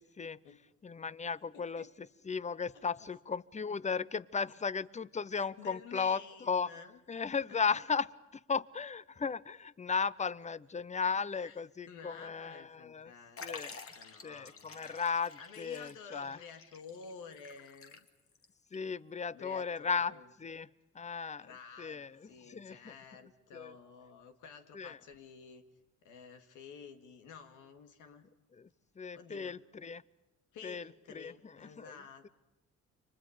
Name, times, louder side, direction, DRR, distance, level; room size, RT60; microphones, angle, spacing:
voice 1, 0.0-0.4 0.8-6.7 7.1-13.1 13.4-13.8 14.2-16.4 18.7-20.7 20.9-21.5 21.8-22.9 23.5-23.7 24.7-25.0 28.5-28.7 29.0-30.0 30.6-32.0, left 5 dB, 25° left, 20 dB, 0.7 m, -36 dB
voice 2, 1.5-1.9 2.7-3.1 5.4-7.0 11.3-11.6 11.9-15.0 15.4-18.1 19.3-20.2 21.4-25.6 26.0-28.3 29.1-29.6 30.5-32.3, left 6 dB, 90° left, 6 dB, 2.2 m, -52 dB
Liquid, 13.4-18.4 18.7-18.8 19.8-19.9, left 5 dB, 45° left, 2.0 m, -50 dB
29.5 x 24.5 x 5.1 m, 0.99 s
cardioid pair, 90°, 30 cm